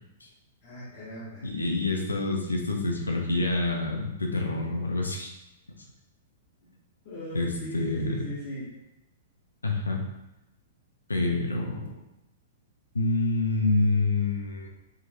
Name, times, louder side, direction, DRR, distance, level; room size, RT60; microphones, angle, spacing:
voice 1, 0.6-1.5 7.0-8.7, left 1 dB, 50° left, -9 dB, 1.4 m, -37 dB
voice 2, 1.4-5.3 7.3-8.2 9.6-10.0 11.1-11.9 12.9-14.7, left 2 dB, 90° left, 1 dB, 0.7 m, -27 dB
5.0 x 3.1 x 2.6 m, 0.92 s
hypercardioid pair, 110°, 0 cm